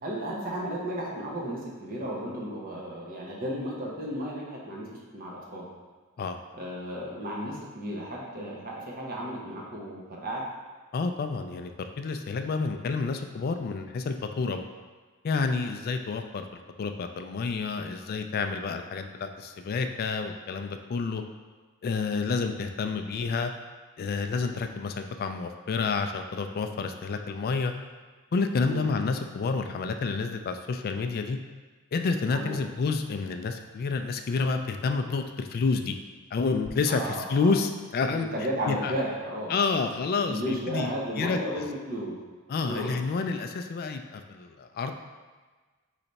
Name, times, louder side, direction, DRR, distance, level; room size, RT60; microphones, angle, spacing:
voice 1, 0.0-5.6 6.5-10.4 28.6-29.0 32.3-32.6 36.9-37.5 38.1-39.6 40.2-42.2 42.7-42.9, equal, 40° right, -3 dB, 0.9 m, -34 dB
voice 2, 10.9-14.6 15.2-16.5 16.8-21.2 21.8-23.5 24.0-27.7 28.3-31.4 31.9-35.9 36.3-38.3 38.7-38.9 39.5-40.4 40.7-41.6 42.5-45.0, left 4 dB, 45° left, 6 dB, 0.3 m, -29 dB
3.9 x 3.3 x 4.0 m, 1.4 s
head